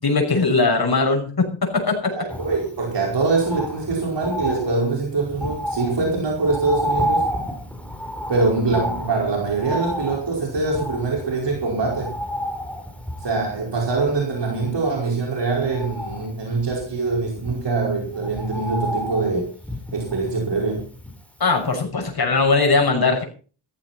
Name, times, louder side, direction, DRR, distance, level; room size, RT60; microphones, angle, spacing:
voice 1, 0.0-2.1 21.4-23.2, left 3 dB, 50° left, 3 dB, 6.2 m, -20 dB
voice 2, 2.1-7.3 8.3-12.1 13.2-19.5 19.9-20.9, right 3 dB, 55° right, -1 dB, 5.1 m, -23 dB
Bird, 2.3-21.4 21.7-21.8, equal, 5° left, 3.8 m, -31 dB
15.0 x 14.5 x 4.3 m, 0.39 s
wide cardioid pair, 110°, 49 cm